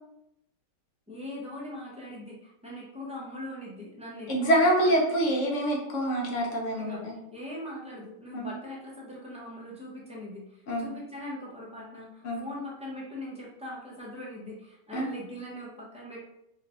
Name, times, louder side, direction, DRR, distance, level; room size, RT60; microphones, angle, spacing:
voice 1, 1.1-5.2 6.8-7.0 7.3-16.2, left 1 dB, 10° right, -6 dB, 0.4 m, -41 dB
voice 2, 4.3-7.2 8.3-8.5 10.7-10.9 12.2-12.4 14.9-15.1, right 1 dB, 55° left, 0 dB, 1.0 m, -26 dB
4.6 x 2.4 x 2.9 m, 0.82 s
omnidirectional pair, 1.8 m